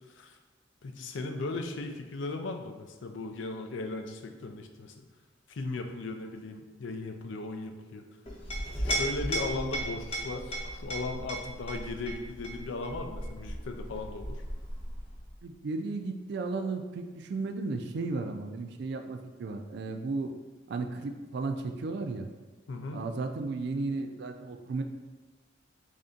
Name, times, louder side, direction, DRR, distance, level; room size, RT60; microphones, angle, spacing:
voice 1, 0.8-5.0 5.5-8.0 8.8-14.4 22.7-23.0, left 3 dB, 75° left, 5 dB, 0.4 m, -37 dB
Chink clink, 8.3-15.4, right 1 dB, 30° left, 0.8 m, -36 dB
voice 2, 15.4-20.3 20.7-22.3 22.9-24.8, right 3 dB, 60° right, 6 dB, 0.3 m, -34 dB
3.3 x 2.7 x 3.7 m, 1.3 s
head